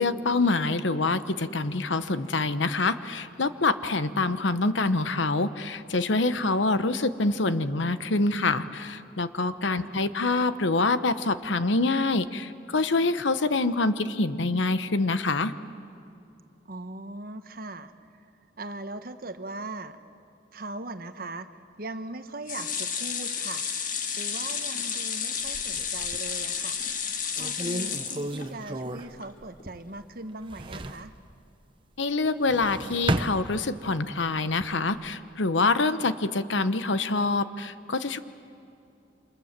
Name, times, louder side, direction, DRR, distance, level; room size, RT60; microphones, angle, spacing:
voice 1, 0.0-15.5 32.0-38.2, left 3 dB, 80° left, 12 dB, 1.0 m, -26 dB
voice 2, 16.7-17.9 18.6-20.0 20.5-21.5 21.8-23.6 24.1-26.8 27.4-31.1, right 2 dB, 50° right, 9 dB, 1.2 m, -39 dB
sound 1, 22.5-28.8 29.2-29.3 29.6-29.7, left 7 dB, 45° left, 1.7 m, -31 dB
sound 2, 25.4-26.4 26.9-27.0 27.4-30.0 30.3-31.1 32.3-34.0 34.5-35.1, right 1 dB, 25° right, 0.9 m, -33 dB
28.5 x 27.0 x 7.4 m, 2.7 s
head